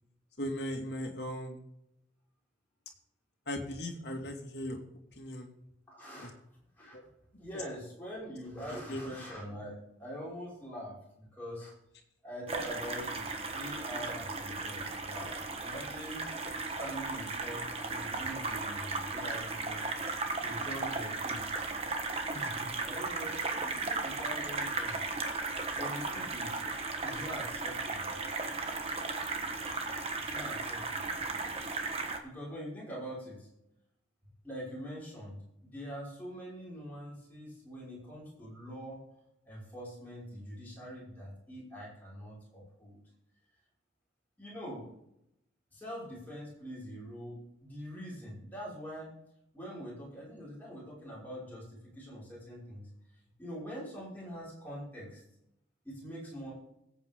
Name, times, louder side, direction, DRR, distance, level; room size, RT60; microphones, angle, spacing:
voice 1, 0.4-1.6 3.5-4.8 5.2-5.5 6.2-6.3 6.9-7.0 8.9-9.1, left 1 dB, 65° left, 2 dB, 2.3 m, -38 dB
voice 2, 5.9-6.3 6.8-7.0 7.4-9.7 10.0-11.7 12.2-16.2 16.8-19.9 20.4-21.5 22.3-25.0 25.7-26.6 26.9-29.1 30.2-31.8 32.2-33.5 34.4-39.0 39.5-43.0 44.4-44.9 45.7-49.1 49.5-52.8 53.4-55.2 55.8-56.5, equal, 10° left, -7 dB, 5.6 m, -44 dB
sound 1, 12.5-32.2, right 3 dB, 35° right, 1.4 m, -36 dB
21.0 x 8.4 x 3.7 m, 0.82 s
head